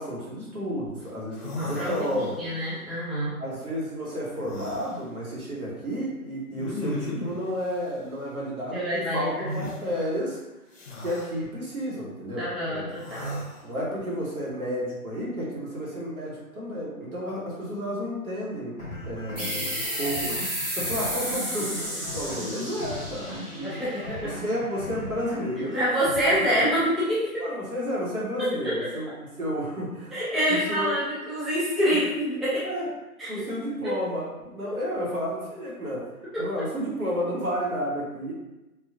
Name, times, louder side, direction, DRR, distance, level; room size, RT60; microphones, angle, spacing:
voice 1, 0.0-2.5 3.4-10.4 11.0-12.9 13.6-18.8 19.0-23.4 24.2-25.8 27.4-29.1 29.4-30.1 30.5-30.9 31.9-32.0 32.6-32.9 33.3-36.1 36.4-38.3, equal, 70° right, -5 dB, 1.4 m, -31 dB
sound 1, 1.0-1.1 1.3-2.6 4.4-5.0 6.6-7.4 9.5-9.8 10.7-11.3 12.9-13.7, left 2 dB, 55° left, 0.8 m, -36 dB
voice 2, 1.6-1.9 2.4-3.3 8.7-9.5 12.4-13.4 23.6-24.3 25.7-27.4 28.4-28.7 30.1-32.6 33.2-33.3 33.8-33.9 36.3-36.4, equal, ahead, -10 dB, 0.4 m, -26 dB
sound 2, 18.8-26.8, left 1 dB, 20° right, 1.0 m, -39 dB
sound 3, 19.4-24.6, equal, 40° right, 0.7 m, -32 dB
3.2 x 2.6 x 2.4 m, 1.0 s
hypercardioid pair, 180°, 45 cm